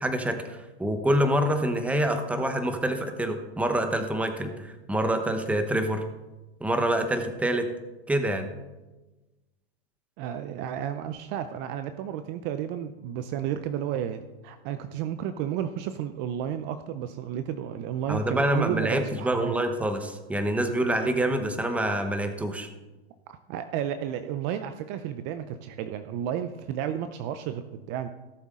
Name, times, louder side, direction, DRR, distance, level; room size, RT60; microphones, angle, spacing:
voice 1, 0.0-6.0 6.6-7.7 8.1-8.5 18.1-22.7, right 1 dB, 5° right, 7 dB, 0.9 m, -26 dB
voice 2, 10.2-19.6 23.3-28.1, right 10 dB, 35° right, 10 dB, 0.6 m, -32 dB
17.5 x 7.1 x 3.7 m, 1.1 s
hypercardioid pair, 135°, 32 cm